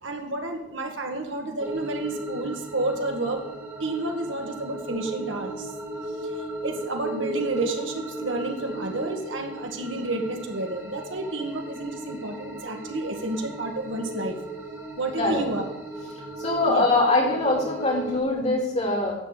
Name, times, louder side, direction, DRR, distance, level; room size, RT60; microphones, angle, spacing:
voice 1, 0.0-3.4 3.8-5.7 6.2-6.3 6.6-14.4 15.0-15.6 16.7-16.9, right 2 dB, 80° right, 3 dB, 1.8 m, -30 dB
sound 1, 1.6-18.2, right 2 dB, 15° right, 1.9 m, -36 dB
voice 2, 16.4-19.1, left 2 dB, 35° left, -3 dB, 3.3 m, -23 dB
12.5 x 4.7 x 8.3 m, 0.84 s
head